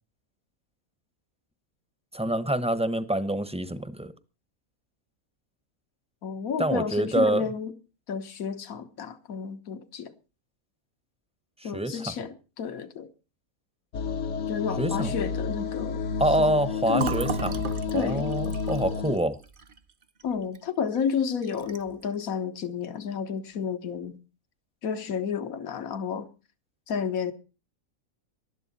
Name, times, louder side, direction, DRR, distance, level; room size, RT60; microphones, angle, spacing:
voice 1, 2.1-4.1 6.6-7.4 11.7-11.9 14.8-15.1 16.2-17.6 17.9-19.4, right 1 dB, 5° right, 0.8 m, -26 dB
voice 2, 6.2-7.7 8.1-10.1 11.6-13.1 14.5-16.0 16.4-16.5 16.9-17.3 17.9-18.4 20.2-24.2 24.8-26.3 26.9-27.3, left 6 dB, 75° left, 1.7 m, -31 dB
sound 1, 13.9-19.2, left 5 dB, 60° left, 1.2 m, -30 dB
Fill (with liquid), 16.9-20.6 21.0-21.1 21.4-22.0, right 6 dB, 40° right, 0.9 m, -36 dB
19.5 x 12.0 x 4.2 m
omnidirectional pair, 1.5 m